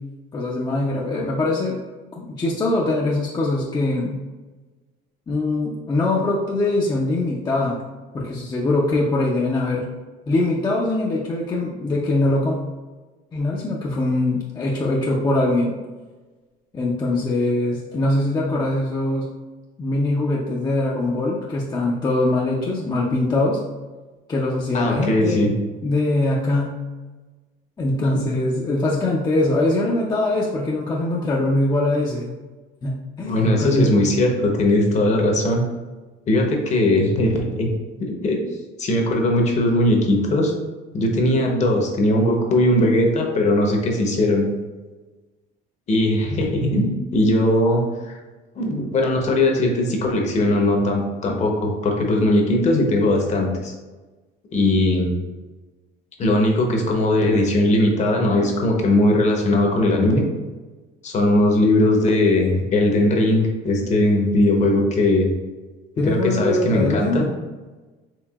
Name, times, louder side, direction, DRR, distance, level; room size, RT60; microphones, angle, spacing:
voice 1, 0.3-1.8 2.2-4.2 5.3-7.8 8.1-9.9 10.3-12.6 13.3-15.7 16.7-19.3 19.8-23.6 24.3-25.6 25.8-26.8 27.8-32.3 32.8-34.0 66.0-67.3, left 2 dB, 25° left, -4 dB, 0.6 m, -22 dB
voice 2, 24.7-25.5 28.0-28.3 33.3-35.6 36.3-37.7 38.0-38.4 38.8-40.5 40.9-44.5 45.9-48.1 48.6-53.7 54.5-55.1 56.2-60.2 61.0-65.3 66.0-67.3, left 1 dB, 40° left, 1 dB, 0.9 m, -19 dB
4.6 x 3.1 x 2.4 m, 1.2 s
cardioid pair, 110°, 18 cm